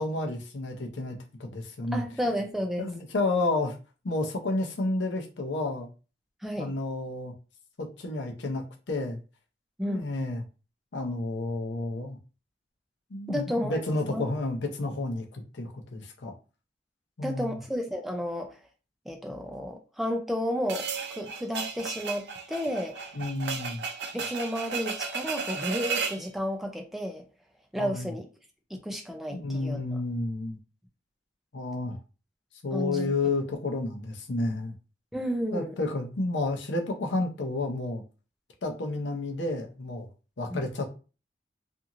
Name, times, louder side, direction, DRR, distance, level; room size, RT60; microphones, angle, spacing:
voice 1, 0.0-2.0 2.8-3.8 4.0-5.9 6.6-7.3 7.8-9.2 9.8-10.4 10.9-12.2 13.1-16.4 17.2-17.6 23.1-23.8 27.8-28.1 29.3-30.6 31.5-32.0 32.6-34.7 35.5-38.0 38.6-40.1 40.4-41.0, left 2 dB, 85° left, 3 dB, 0.6 m, -31 dB
voice 2, 1.9-2.9 6.4-6.7 9.8-10.1 13.3-13.8 14.1-14.2 17.2-18.6 19.1-22.9 24.1-27.2 27.7-28.3 28.7-30.0 32.7-33.1 35.1-35.7 40.5-40.7, equal, ahead, 2 dB, 0.4 m, -32 dB
sound 1, 20.7-26.2, right 5 dB, 65° right, 0.5 m, -34 dB
2.8 x 2.6 x 2.5 m, 0.33 s
head